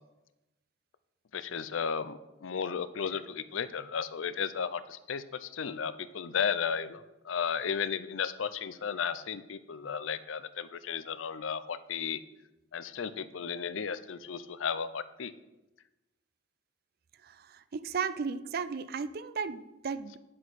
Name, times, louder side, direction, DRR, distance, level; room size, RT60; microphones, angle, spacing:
voice 1, 1.3-12.2 12.7-15.3, left 6 dB, 85° left, 14 dB, 0.5 m, -34 dB
voice 2, 17.7-20.2, right 5 dB, 50° right, 14 dB, 0.4 m, -34 dB
9.4 x 7.6 x 4.1 m, 1.0 s
head